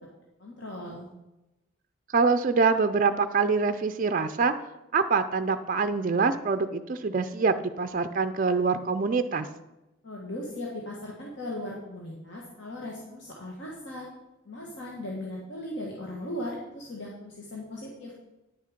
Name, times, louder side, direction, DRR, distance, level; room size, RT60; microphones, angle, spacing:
voice 1, 0.4-1.1 10.0-14.1 14.4-18.1, left 1 dB, 55° left, -3 dB, 1.5 m, -38 dB
voice 2, 2.1-4.5 4.9-9.5, right 4 dB, 40° right, 9 dB, 0.4 m, -25 dB
9.7 x 6.6 x 5.0 m, 0.98 s
head